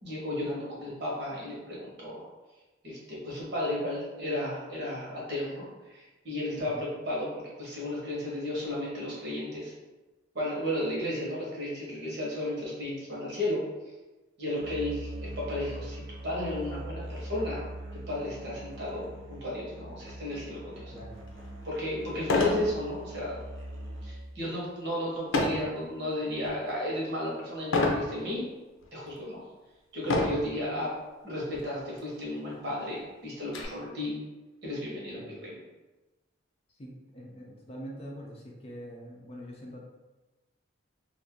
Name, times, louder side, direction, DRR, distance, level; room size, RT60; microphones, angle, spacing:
voice 1, 0.0-2.2 2.8-5.7 5.9-7.3 7.6-9.7 10.3-13.6 14.4-17.7 18.1-20.9 21.6-23.4 24.0-28.4 28.9-29.4 29.9-30.9 31.2-34.1 34.6-35.6, left 1 dB, 55° right, -5 dB, 1.1 m, -34 dB
Musical instrument, 14.6-24.4, right 1 dB, 75° right, 0.6 m, -42 dB
voice 2, 20.9-21.2 35.1-35.4 36.8-39.8, equal, 30° left, -2 dB, 0.5 m, -44 dB
sound 1, 21.3-21.4 22.2-22.7 23.1-23.4 25.3-25.7 26.3-26.7 27.7-28.1 28.8-28.9 30.0-30.5 31.5-31.7 32.0-32.1 32.5-33.6, left 2 dB, 90° left, 0.6 m, -27 dB
2.5 x 2.5 x 3.6 m, 1.1 s
head